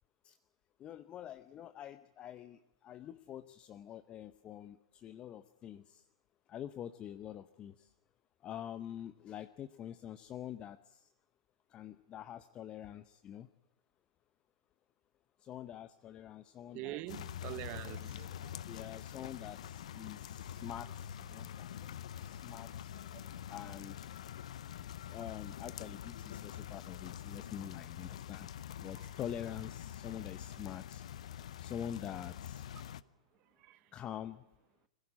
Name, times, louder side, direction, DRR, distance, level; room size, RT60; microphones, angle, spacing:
voice 1, 0.8-6.0 6.5-7.9 8.4-11.1 11.7-13.5 15.4-17.0 18.7-22.9 23.5-24.1 25.1-28.5 28.8-31.0 31.6-32.6 33.9-34.4, left 10 dB, 25° left, 0.7 m, -46 dB
voice 2, 16.7-18.7 20.6-20.7 21.3-21.5 22.9-23.4 27.5-27.7 33.6-33.9, right 17 dB, 40° right, 0.8 m, -46 dB
sound 1, 17.1-33.0, left 10 dB, 65° left, 0.7 m, -45 dB
21.0 x 15.5 x 8.7 m
hypercardioid pair, 110°, 4 cm